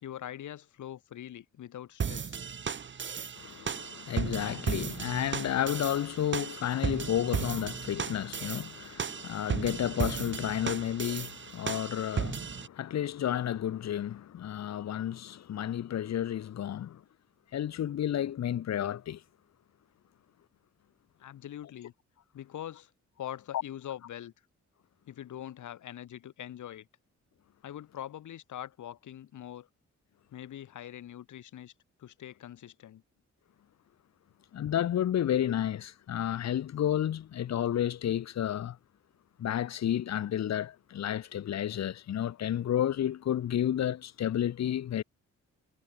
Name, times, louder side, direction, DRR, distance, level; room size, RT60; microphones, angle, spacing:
voice 1, 0.0-2.4 21.2-21.9 22.3-22.9 23.2-24.3 25.1-26.9 27.6-29.7 30.3-31.7 32.0-33.0, left 11 dB, 85° left, 2.6 m, -43 dB
sound 1, 2.0-12.7, right 6 dB, 40° right, 3.1 m, -35 dB
voice 2, 3.4-17.0 17.5-19.2 34.5-38.8 39.4-45.0, left 10 dB, 65° left, 1.4 m, -31 dB
wide cardioid pair, 160°, 30 cm